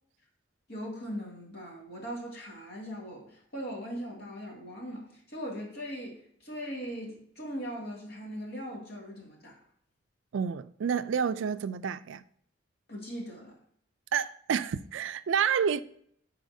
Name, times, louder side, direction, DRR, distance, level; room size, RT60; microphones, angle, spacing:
voice 1, 0.7-9.6 12.9-13.6, equal, 55° left, 2.3 m, -40 dB
voice 2, 10.3-12.2 14.1-15.8, right 7 dB, 80° right, 0.4 m, -29 dB
11.0 x 4.3 x 2.7 m
head